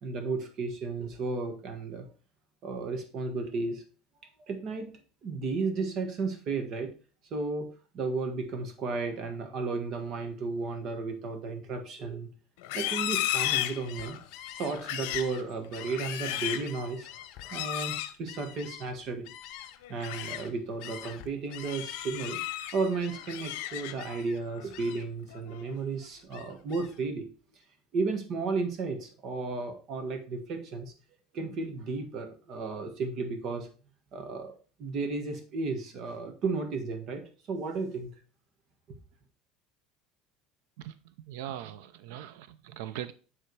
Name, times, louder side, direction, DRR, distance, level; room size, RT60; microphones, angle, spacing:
voice 1, 0.0-2.1 2.6-3.8 4.5-4.9 5.2-6.9 7.3-7.7 7.9-12.3 12.7-14.2 14.6-17.1 17.5-17.9 18.2-19.3 19.9-22.4 22.7-27.2 27.9-30.9 31.3-33.7 34.1-37.2 37.5-38.1, right 4 dB, 40° right, 1.5 m, -33 dB
Livestock farm animals working animals, 12.6-14.2 14.7-15.3 15.8-16.7 17.4-18.1 19.8-20.4 20.8-21.1 21.6-22.7 23.1-24.2 24.5-24.9 25.3-25.7, left 14 dB, 90° left, 0.8 m, -34 dB
Gull seagull, 13.7-20.5 20.8-23.5 24.0-24.4 24.7-25.2 25.6-27.0, left 11 dB, 55° left, 0.9 m, -47 dB
voice 2, 40.8-43.1, right 11 dB, 85° right, 0.5 m, -41 dB
9.5 x 3.6 x 4.7 m
cardioid pair, 170°, 0 cm